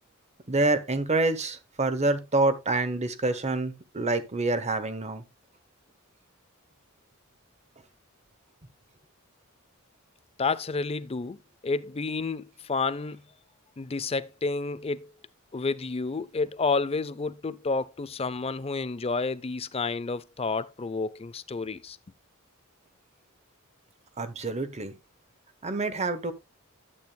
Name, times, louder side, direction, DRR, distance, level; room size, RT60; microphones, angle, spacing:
voice 1, 0.5-5.2 24.2-24.9 25.6-26.3, right 2 dB, 30° right, 1.1 m, -27 dB
voice 2, 10.4-13.2 13.8-15.1 15.5-22.0, left 4 dB, 30° left, 0.5 m, -30 dB
12.0 x 8.9 x 2.2 m
head